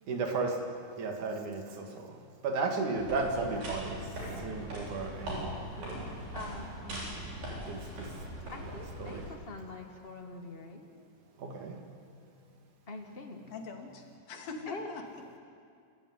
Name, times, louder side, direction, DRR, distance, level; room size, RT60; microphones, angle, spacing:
voice 1, 0.1-0.6 1.0-2.2 2.4-6.2 6.8-8.1 8.4-9.3 11.4-11.8, right 3 dB, 60° right, 3 dB, 3.5 m, -35 dB
sound 1, 3.0-9.3, equal, 85° right, 9.7 m, -40 dB
voice 2, 6.3-7.0 8.5-11.1 12.9-13.4 14.7-14.9, left 3 dB, 25° left, 4 dB, 1.3 m, -44 dB
voice 3, 13.5-15.4, left 4 dB, 90° left, 3 dB, 4.2 m, -43 dB
29.0 x 14.0 x 9.7 m, 2.3 s
omnidirectional pair, 4.0 m